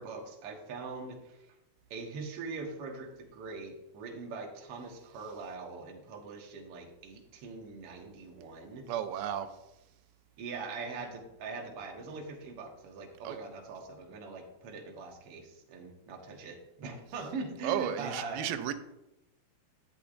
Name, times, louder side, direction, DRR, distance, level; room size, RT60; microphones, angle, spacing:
voice 1, 0.0-1.5 1.9-8.9 10.4-18.5, right 4 dB, 55° right, 1.9 m, -42 dB
voice 2, 8.9-9.5 13.2-13.4 17.6-18.7, right 10 dB, 90° right, 2.6 m, -33 dB
11.5 x 10.0 x 2.6 m
omnidirectional pair, 4.2 m